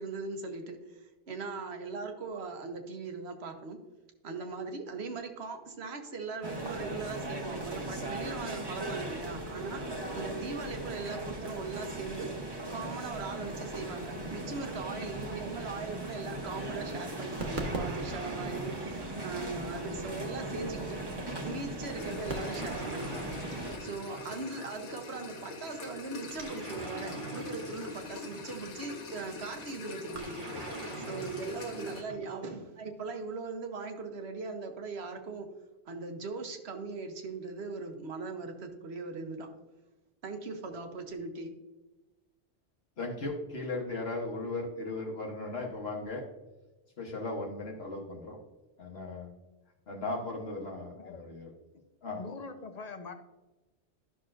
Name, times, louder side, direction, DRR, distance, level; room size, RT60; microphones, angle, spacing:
voice 1, 0.0-3.8 4.2-9.8 10.1-12.3 12.7-21.0 21.4-23.4 23.8-30.5 31.0-35.5 35.9-39.5 40.2-41.5, right 4 dB, 65° right, 5 dB, 1.1 m, -39 dB
sound 1, 6.4-23.8, right 1 dB, 25° right, 0.9 m, -38 dB
sound 2, 17.4-20.1 22.3-24.7 26.3-28.8 30.1-32.6, right 2 dB, 45° right, 1.2 m, -41 dB
sound 3, 22.0-32.0, left 3 dB, 85° left, 1.4 m, -43 dB
voice 2, 43.0-46.2 47.0-48.4 48.8-49.3 49.9-51.5 52.0-52.2, left 2 dB, 65° left, -1 dB, 1.3 m, -37 dB
voice 3, 52.1-53.1, left 4 dB, 45° left, 7 dB, 0.7 m, -42 dB
11.5 x 6.0 x 2.5 m, 1.1 s
omnidirectional pair, 1.2 m